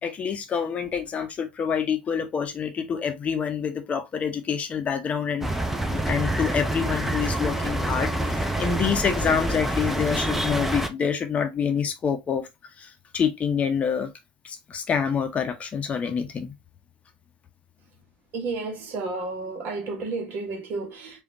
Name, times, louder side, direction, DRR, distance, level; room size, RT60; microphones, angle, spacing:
voice 1, 0.0-5.5 5.8-12.5 12.8-14.1 14.4-16.5, left 7 dB, 30° left, 0.8 m, -27 dB
sound 1, 5.4-10.9, right 1 dB, 5° right, 0.7 m, -27 dB
voice 2, 18.3-21.2, right 3 dB, 45° right, 1.3 m, -32 dB
5.0 x 2.5 x 2.9 m
figure-of-eight pair, 75°, 5 cm